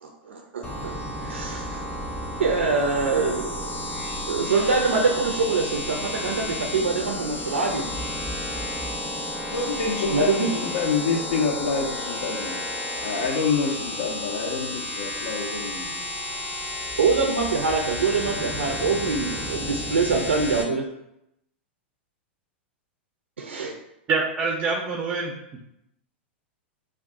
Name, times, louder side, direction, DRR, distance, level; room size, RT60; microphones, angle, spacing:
voice 1, 0.0-1.8 2.4-3.8 4.3-7.8 10.1-10.5 17.0-20.8 23.4-23.8, right 4 dB, 90° right, 2 dB, 0.4 m, -24 dB
sound 1, 0.6-20.6, left 1 dB, 15° left, 0.6 m, -32 dB
voice 2, 9.5-12.6 13.0-16.0, left 5 dB, 70° left, -2 dB, 0.5 m, -27 dB
voice 3, 24.1-25.3, right 4 dB, 25° right, 1 dB, 0.4 m, -25 dB
2.5 x 2.3 x 3.5 m, 0.82 s
hypercardioid pair, 105°, 6 cm